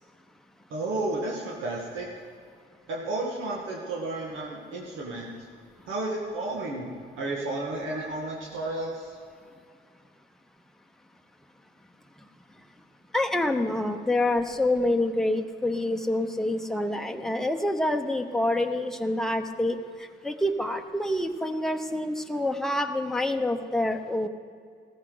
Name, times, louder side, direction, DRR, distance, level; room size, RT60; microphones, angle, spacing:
voice 1, 0.7-2.1 2.9-5.3 5.9-6.9 7.2-9.2, right 2 dB, 85° right, -2 dB, 1.7 m, -32 dB
voice 2, 13.1-19.8 20.2-24.3, left 1 dB, ahead, 5 dB, 0.8 m, -27 dB
14.5 x 14.0 x 3.9 m, 2.2 s
cardioid pair, 90°, 20 cm